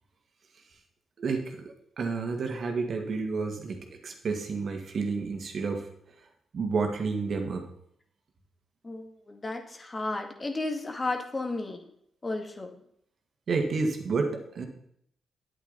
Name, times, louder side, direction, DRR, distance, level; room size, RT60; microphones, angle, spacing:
voice 1, 1.2-5.9 6.5-7.7 13.5-14.6, right 4 dB, 60° right, 4 dB, 1.8 m, -30 dB
voice 2, 8.8-11.8 12.2-12.8, left 2 dB, 35° left, 4 dB, 2.0 m, -33 dB
9.7 x 8.7 x 4.1 m, 0.69 s
hypercardioid pair, 45°, 0 cm